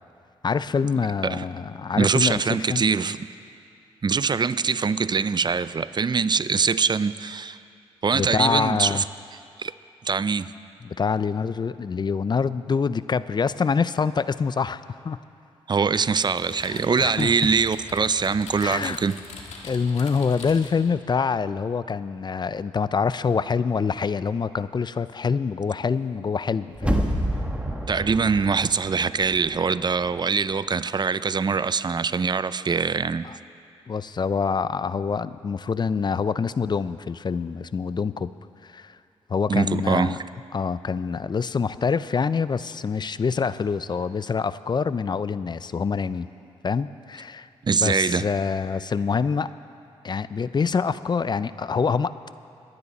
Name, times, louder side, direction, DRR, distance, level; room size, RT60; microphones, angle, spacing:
voice 1, 0.4-2.8 8.1-9.0 10.8-15.2 16.6-17.5 18.6-19.0 19.6-27.0 33.2-33.3 33.9-38.3 38.6-38.9 39.3-40.2 40.5-46.3 46.6-47.5 47.8-49.5 50.0-52.1, left 5 dB, 40° left, 15 dB, 0.5 m, -25 dB
voice 2, 2.0-3.3 4.0-7.6 8.0-9.0 9.6-9.7 10.0-10.5 15.7-19.1 27.9-33.3 39.5-40.2 47.6-48.2, right 5 dB, 40° right, 15 dB, 0.5 m, -23 dB
Typing, 15.9-20.9, left 4 dB, 75° left, 1.8 m, -42 dB
sound 1, 26.8-29.7 30.0-30.1, equal, 10° right, 1.5 m, -28 dB
22.5 x 9.7 x 4.1 m, 2.6 s
supercardioid pair, 50°, 12 cm